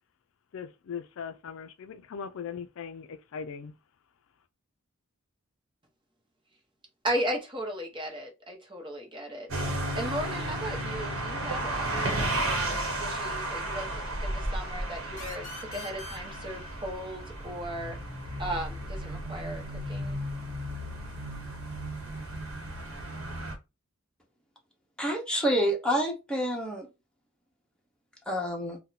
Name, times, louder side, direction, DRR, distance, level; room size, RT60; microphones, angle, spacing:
voice 1, 0.5-3.8, left 6 dB, 70° left, 0.4 m, -39 dB
voice 2, 7.0-18.0 18.4-20.2, right 1 dB, 25° right, 0.9 m, -36 dB
sound 1, 9.5-23.6, right 1 dB, 75° right, 1.0 m, -33 dB
sound 2, 15.2-18.6, left 3 dB, 35° left, 0.9 m, -46 dB
voice 3, 25.0-26.9 28.3-28.8, equal, 5° left, 0.9 m, -28 dB
2.8 x 2.2 x 3.9 m
head